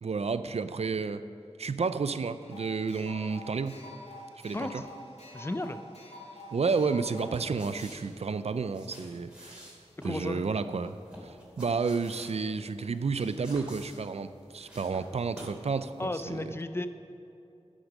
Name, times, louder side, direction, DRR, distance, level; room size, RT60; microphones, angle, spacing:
voice 1, 0.0-1.2 1.6-3.8 4.4-4.8 6.5-9.7 10.0-11.0 11.2-16.5, right 4 dB, 70° right, 12 dB, 0.4 m, -31 dB
sound 1, 2.4-7.4, left 1 dB, 80° left, 2.4 m, -47 dB
voice 2, 4.5-4.9 5.3-5.8 10.0-10.4 16.0-16.9, left 1 dB, 20° left, 10 dB, 0.6 m, -34 dB
sound 2, 7.4-15.7 15.9-16.1, equal, 10° right, 2.9 m, -50 dB
11.5 x 6.3 x 6.2 m, 2.7 s
wide cardioid pair, 50°, 11 cm